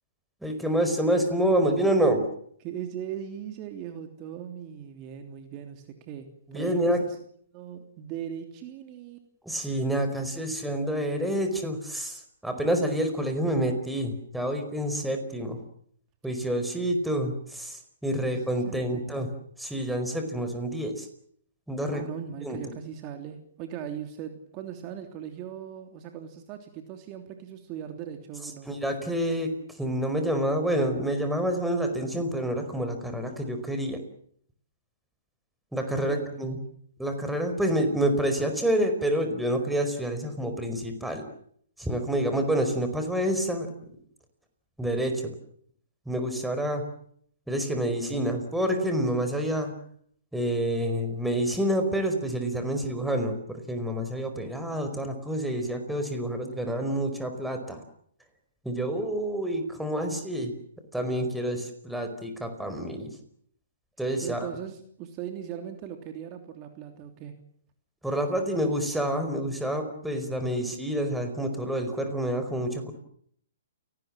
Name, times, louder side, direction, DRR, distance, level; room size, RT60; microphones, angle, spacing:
voice 1, 0.4-2.3 6.5-7.0 9.4-15.6 16.2-19.3 19.6-21.1 21.7-22.0 22.4-22.6 28.7-34.0 35.7-36.6 37.0-41.2 41.8-43.7 44.8-45.3 46.1-46.9 47.5-49.7 50.3-57.8 58.6-60.5 60.9-63.2 64.0-64.5 68.0-72.9, right 1 dB, ahead, 6 dB, 4.8 m, -28 dB
voice 2, 2.6-7.2 7.5-9.2 18.2-18.4 18.6-19.2 21.9-28.7 35.9-36.4 64.2-67.3, right 9 dB, 35° right, 5 dB, 3.1 m, -39 dB
30.0 x 18.5 x 7.5 m, 0.65 s
hypercardioid pair, 135°, 0 cm